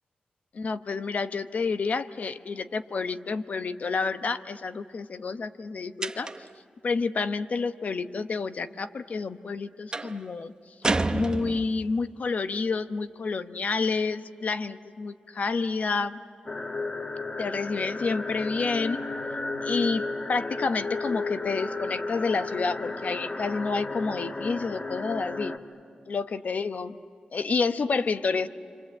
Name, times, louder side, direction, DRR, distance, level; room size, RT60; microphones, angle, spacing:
voice 1, 0.5-6.3 6.8-10.5 11.1-16.2 17.4-19.0 19.6-25.5 26.1-27.0 27.3-28.5, left 4 dB, 60° left, 11 dB, 0.9 m, -29 dB
sound 1, 6.0-6.6 9.9-10.2 10.8-11.9, right 2 dB, 25° right, 0.9 m, -29 dB
sound 2, 16.5-25.6, left 3 dB, 35° left, 1.3 m, -33 dB
29.5 x 25.5 x 7.7 m, 2.5 s
cardioid pair, 80°, 3 cm